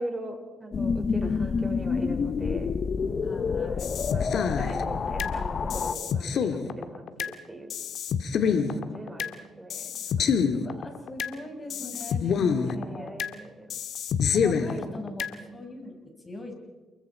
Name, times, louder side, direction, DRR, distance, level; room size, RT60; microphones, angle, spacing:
voice 1, 0.0-2.7 3.3-3.8 4.1-7.7 8.4-10.4 11.3-11.9 12.6-13.7 14.6-15.0 15.3-15.5, right 1 dB, 15° right, 3 dB, 5.5 m, -40 dB
sound 1, 0.7-5.9, left 5 dB, 45° left, 0.9 m, -28 dB
voice 2, 1.2-1.7 3.2-3.9 8.4-9.0 10.2-13.2 14.3-15.3 15.5-16.5, left 2 dB, 25° left, 4 dB, 5.9 m, -41 dB
sound 2, 3.8-5.3 5.7-7.3 7.7-9.3 9.7-11.3 11.7-13.3 13.7-15.3, left 6 dB, 65° left, 1.8 m, -27 dB
29.5 x 22.5 x 4.7 m, 1.3 s
cardioid pair, 90°, 0 cm